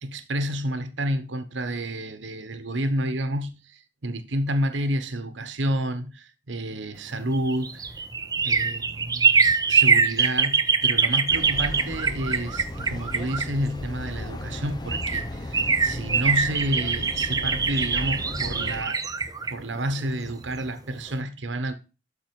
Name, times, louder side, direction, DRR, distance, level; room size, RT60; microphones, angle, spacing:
voice 1, 0.0-8.0 8.4-19.0 19.5-21.8, right 1 dB, 85° right, 1.1 m, -30 dB
sound 1, 7.2-14.0 14.6-14.7 14.9-20.7 21.0-21.1, right 5 dB, 20° right, 0.7 m, -23 dB
sound 2, 11.3-18.8, left 1 dB, 25° left, 0.8 m, -35 dB
12.0 x 4.4 x 4.6 m
head